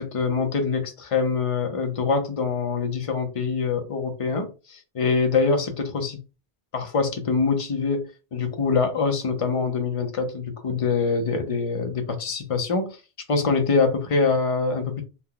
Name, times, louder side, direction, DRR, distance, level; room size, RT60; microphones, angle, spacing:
voice 1, 0.0-6.2 6.7-8.0 8.3-13.0 13.3-15.0, left 4 dB, 40° left, 0.5 m, -24 dB
2.9 x 2.2 x 3.7 m
omnidirectional pair, 1.2 m